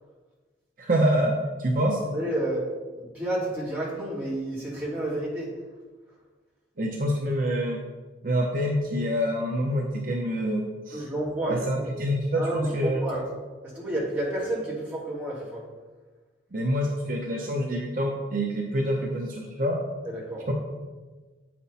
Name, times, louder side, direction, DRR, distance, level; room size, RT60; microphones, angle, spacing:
voice 1, 0.8-2.0 6.8-7.8 8.2-11.0 11.5-13.1 16.5-19.8 20.5-20.6, equal, 50° right, 0 dB, 0.9 m, -26 dB
voice 2, 2.1-2.7 2.9-5.5 10.9-11.9 12.4-13.3 13.6-15.6 20.0-20.5, right 1 dB, 10° right, -7 dB, 2.8 m, -30 dB
8.5 x 6.0 x 4.2 m, 1.3 s
head